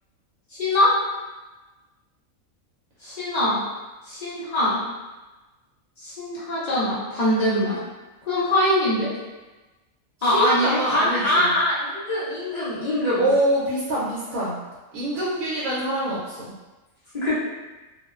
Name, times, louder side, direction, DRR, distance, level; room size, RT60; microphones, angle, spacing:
voice 1, 0.5-1.0 3.0-3.6 4.0-4.8 6.0-7.8 8.3-9.1 10.2-13.3 17.1-17.4, left 1 dB, 85° left, -9 dB, 0.3 m, -23 dB
voice 2, 10.2-11.5 13.2-14.6 14.9-16.5, right 1 dB, 75° right, -7 dB, 1.0 m, -25 dB
2.5 x 2.1 x 2.3 m, 1.2 s
omnidirectional pair, 1.5 m